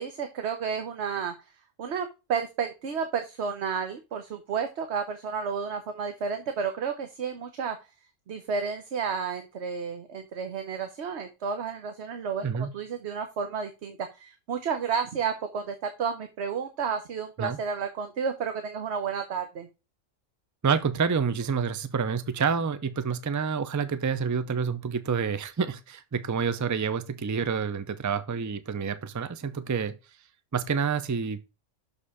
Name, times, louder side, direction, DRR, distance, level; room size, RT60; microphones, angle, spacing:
voice 1, 0.0-1.3 1.8-7.8 8.3-19.7, right 6 dB, 60° right, 1.1 m, -31 dB
voice 2, 20.6-30.0 30.5-31.4, right 6 dB, 25° right, 0.3 m, -28 dB
6.6 x 5.4 x 4.9 m
omnidirectional pair, 1.3 m